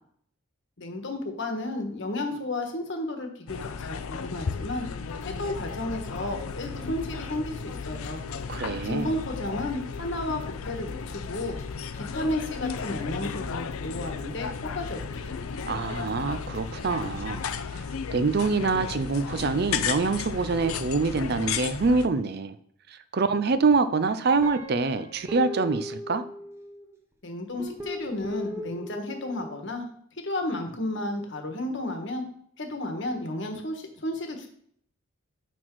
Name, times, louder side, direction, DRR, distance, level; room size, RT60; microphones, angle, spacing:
voice 1, 0.8-4.9 5.2-8.2 8.8-11.6 11.9-15.4 27.2-29.9 30.2-32.2 32.6-34.5, left 1 dB, 55° left, 4 dB, 1.3 m, -32 dB
sound 1, 3.5-22.1, left 6 dB, 80° left, 0.5 m, -34 dB
sound 2, 5.0-17.6, equal, 35° left, 1.0 m, -46 dB
voice 2, 8.5-9.1 15.6-17.8 18.1-22.6 22.9-26.2, right 4 dB, 50° right, 12 dB, 0.4 m, -25 dB
Guitar, 24.4-26.9 27.6-29.5, left 1 dB, 10° right, 0.7 m, -38 dB
6.1 x 5.9 x 4.6 m, 0.65 s
head